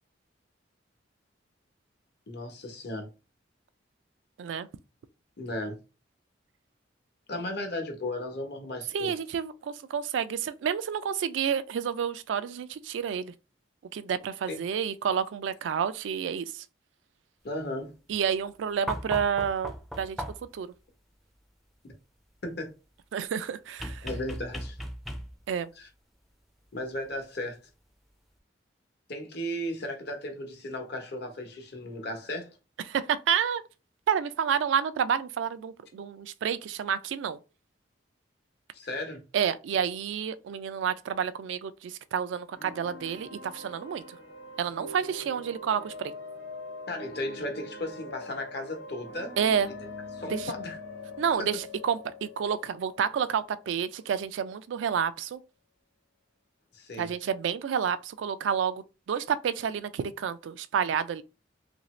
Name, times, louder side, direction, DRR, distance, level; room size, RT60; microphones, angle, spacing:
voice 1, 2.3-3.1 5.4-5.8 7.3-9.1 14.5-14.6 17.4-17.9 21.8-21.9 22.4-22.7 24.0-24.8 25.8-25.9 26.7-27.6 29.1-32.5 38.7-39.2 46.9-49.4 50.1-50.8 56.7-57.1, left 1 dB, 60° left, 0.9 m, -35 dB
voice 2, 8.9-13.3 13.9-16.6 18.1-20.2 20.5-20.7 23.1-24.1 25.5-25.7 32.9-33.6 34.1-37.4 39.3-44.2 44.6-46.1 49.4-49.7 50.3-50.5 51.2-55.4 57.0-61.2, right 7 dB, 75° right, 0.3 m, -29 dB
sound 1, 18.9-20.6 23.8-25.6 27.1-27.2, equal, ahead, 0.4 m, -37 dB
sound 2, 42.5-54.2, left 2 dB, 85° left, 1.0 m, -43 dB
2.8 x 2.6 x 3.1 m
head